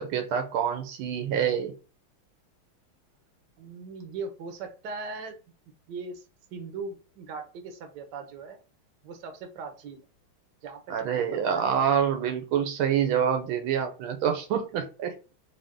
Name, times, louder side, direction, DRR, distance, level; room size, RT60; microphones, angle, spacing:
voice 1, 0.0-1.7 10.9-15.2, right 8 dB, 85° right, 6 dB, 1.5 m, -26 dB
voice 2, 3.6-5.4 5.9-6.2 6.5-8.6 9.0-10.0 10.6-11.6, right 4 dB, 65° right, 5 dB, 1.3 m, -39 dB
3.5 x 2.7 x 3.5 m, 0.33 s
omnidirectional pair, 2.3 m